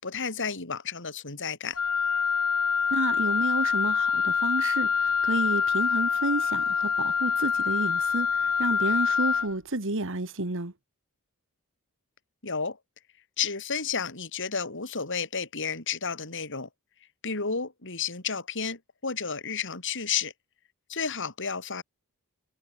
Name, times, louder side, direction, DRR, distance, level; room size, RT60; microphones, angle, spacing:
voice 1, 0.0-1.8 12.4-12.8 13.4-16.7 17.2-20.3 20.9-21.8, left 6 dB, 55° left, 4.8 m, -32 dB
Wind instrument woodwind instrument, 1.8-9.5, left 6 dB, 85° left, 6.8 m, -25 dB
voice 2, 2.9-10.7, right 2 dB, 60° right, 2.2 m, -30 dB
head